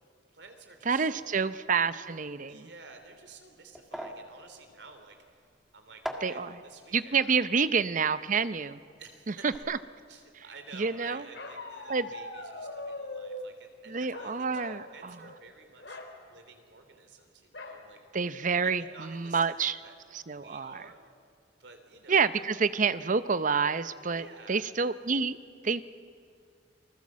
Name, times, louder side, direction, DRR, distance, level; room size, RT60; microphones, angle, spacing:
voice 1, 0.3-1.4 2.5-5.4 5.7-7.6 9.0-9.5 10.1-16.0 16.3-18.0 18.6-20.0 20.4-21.1 21.6-22.4 24.1-24.6, right 4 dB, 70° right, 6 dB, 3.1 m, -52 dB
voice 2, 0.9-2.7 6.2-6.5 6.9-8.8 9.4-9.8 10.8-11.2 11.9-12.1 13.9-15.2 18.1-19.8 20.3-20.8 22.1-25.4 25.6-25.8, right 5 dB, 45° right, 14 dB, 0.7 m, -28 dB
sound 1, 3.7-9.0 9.3-9.6, equal, ahead, 1.9 m, -44 dB
Bark, 11.3-13.5 14.1-14.9 15.2-15.4 15.8-16.1 17.5-17.8 18.4-18.5 18.8-19.2, left 2 dB, 70° left, 2.9 m, -41 dB
28.0 x 20.0 x 7.5 m, 2.3 s
head